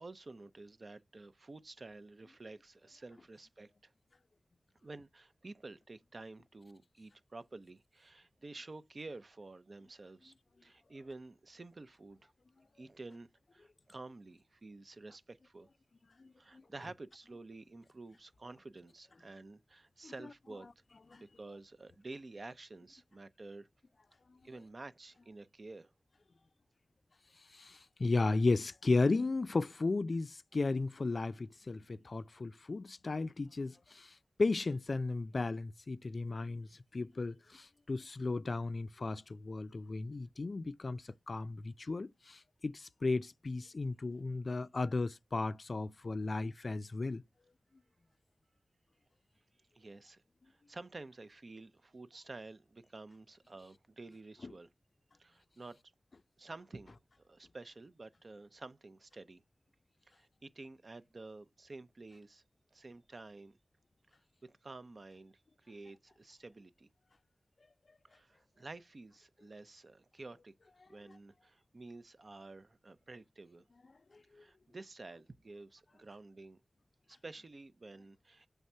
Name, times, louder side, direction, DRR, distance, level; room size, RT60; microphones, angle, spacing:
voice 1, 0.0-3.9 4.8-10.3 10.6-12.3 12.8-15.7 16.4-20.7 21.2-23.7 24.4-25.9 49.7-54.7 55.2-55.8 56.4-57.0 57.2-59.4 60.1-62.4 62.7-63.6 64.4-66.9 68.1-70.5 70.9-73.6 74.3-76.6 77.1-78.5, right 3 dB, 55° right, 0.6 m, -51 dB
voice 2, 16.2-16.6 20.0-20.1 21.1-21.2 27.5-34.1 34.4-36.7 36.9-47.2 54.4-54.5, left 3 dB, 60° left, 0.4 m, -35 dB
7.2 x 3.5 x 5.4 m
wide cardioid pair, 70°, 0 cm